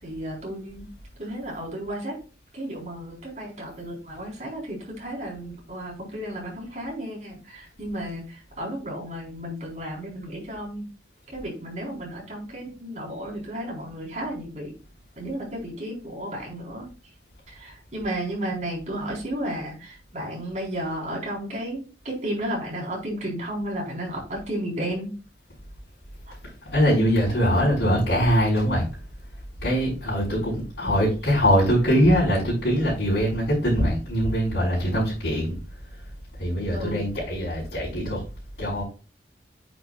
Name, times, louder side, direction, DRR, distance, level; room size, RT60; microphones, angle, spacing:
voice 1, 0.0-0.9 1.2-2.2 2.5-10.9 11.3-14.7 15.2-16.9 17.5-25.1 26.3-26.4 30.8-31.0 36.7-37.0, right 1 dB, 40° right, -3 dB, 4.1 m, -33 dB
voice 2, 26.6-28.9 29.6-35.6 36.4-38.2 38.6-38.8, equal, 75° left, -9 dB, 4.3 m, -22 dB
8.8 x 6.1 x 2.4 m, 0.34 s
head